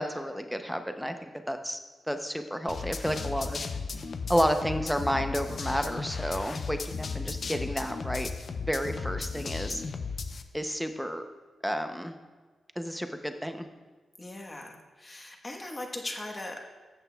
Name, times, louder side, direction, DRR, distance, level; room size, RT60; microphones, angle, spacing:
voice 1, 0.0-1.8 2.1-3.6 4.3-8.3 8.7-9.8 10.5-11.2 11.6-12.1 12.8-13.7, equal, ahead, 7 dB, 0.5 m, -31 dB
sound 1, 2.7-10.4, left 4 dB, 45° left, 0.5 m, -35 dB
voice 2, 14.2-16.6, left 1 dB, 20° left, 1 dB, 1.0 m, -39 dB
13.5 x 8.0 x 2.2 m, 1.4 s
wide cardioid pair, 145°, 0 cm